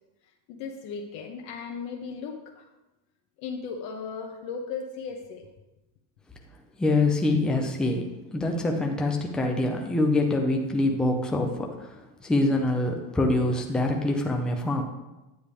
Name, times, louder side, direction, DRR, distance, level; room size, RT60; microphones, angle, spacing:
voice 1, 0.5-2.7 3.4-5.5, left 5 dB, 55° left, 1 dB, 1.1 m, -36 dB
voice 2, 6.8-8.0 8.3-14.8, left 2 dB, ahead, 1 dB, 0.4 m, -25 dB
9.6 x 9.6 x 3.5 m, 1.0 s
cardioid pair, 180°, 44 cm